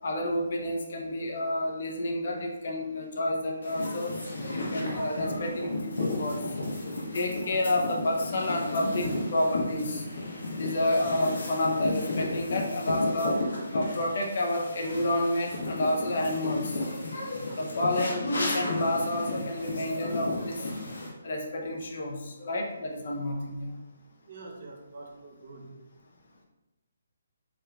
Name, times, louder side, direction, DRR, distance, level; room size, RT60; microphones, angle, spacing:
voice 1, 0.0-4.2 4.5-6.4 7.0-10.0 10.5-13.4 13.7-16.8 17.5-20.6 21.2-23.7, left 1 dB, 60° left, 1 dB, 0.6 m, -29 dB
sound 1, 3.6-21.1, left 2 dB, 80° left, 1.1 m, -33 dB
voice 2, 24.3-25.8, right 3 dB, 55° right, 1 dB, 0.7 m, -46 dB
3.5 x 3.3 x 2.3 m, 1.0 s
hypercardioid pair, 155°, 0 cm